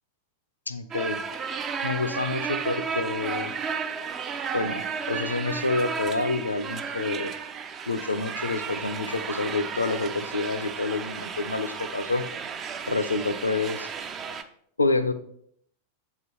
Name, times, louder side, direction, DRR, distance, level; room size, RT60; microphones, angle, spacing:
voice 1, 0.7-1.2 1.8-3.5 4.5-7.3 7.9-12.2 12.9-13.9 14.8-15.1, left 3 dB, 80° left, 12 dB, 0.5 m, -28 dB
sound 1, 0.9-14.4, right 6 dB, 25° right, 0.5 m, -33 dB
7.8 x 3.7 x 4.5 m, 0.67 s
figure-of-eight pair, 90°, 0 cm